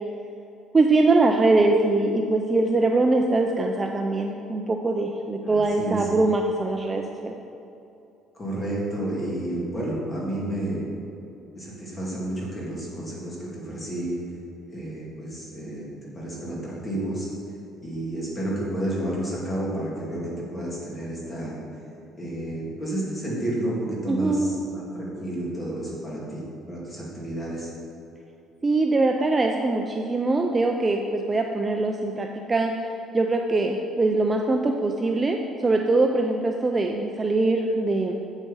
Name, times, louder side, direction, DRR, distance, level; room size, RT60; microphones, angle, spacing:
voice 1, 0.7-7.3 24.1-24.6 28.6-32.7 33.1-38.2, right 2 dB, 15° right, 2 dB, 0.4 m, -22 dB
voice 2, 5.4-6.1 8.4-10.9 11.5-14.2 14.7-15.9 16.1-17.3 17.8-21.5 22.1-26.4 26.7-27.7, right 1 dB, 20° left, -5 dB, 2.3 m, -31 dB
8.1 x 7.6 x 5.5 m, 2.8 s
cardioid pair, 175°, 0 cm